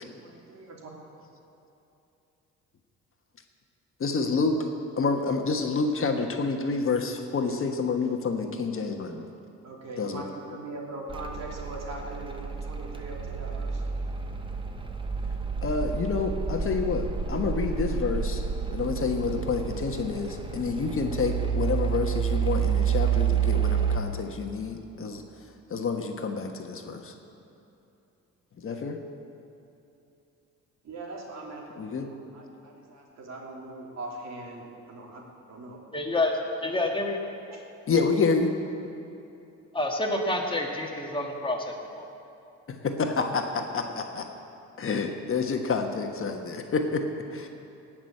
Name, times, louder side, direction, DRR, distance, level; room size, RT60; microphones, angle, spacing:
voice 1, 0.2-1.2 9.6-13.8 30.8-35.9 37.5-37.6, right 2 dB, 60° right, -1 dB, 3.0 m, -41 dB
voice 2, 4.0-4.7 5.0-9.3 10.0-10.2 15.6-18.4 18.7-25.2 25.7-27.1 28.6-29.0 31.8-32.1 37.9-38.5 42.7-44.3 44.8-47.5, left 4 dB, 45° left, 4 dB, 1.3 m, -28 dB
sound 1, 11.1-24.0, right 7 dB, 15° right, 1.1 m, -29 dB
voice 3, 35.9-37.2 39.7-42.1, left 2 dB, 15° left, 1 dB, 1.9 m, -28 dB
18.0 x 6.2 x 8.6 m, 2.8 s
cardioid pair, 90°, 30 cm